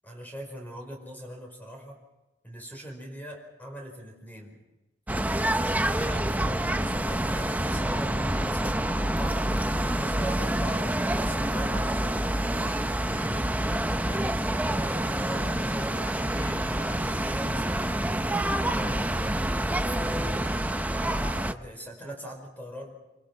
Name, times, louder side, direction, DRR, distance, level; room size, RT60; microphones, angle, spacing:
voice 1, 0.0-2.0 2.4-4.6 5.5-9.4 10.0-19.4 19.8-22.9, equal, 10° left, 1 dB, 5.1 m, -40 dB
sound 1, 5.1-21.5, right 1 dB, 10° right, 0.8 m, -27 dB
26.5 x 26.0 x 6.0 m, 1.0 s
head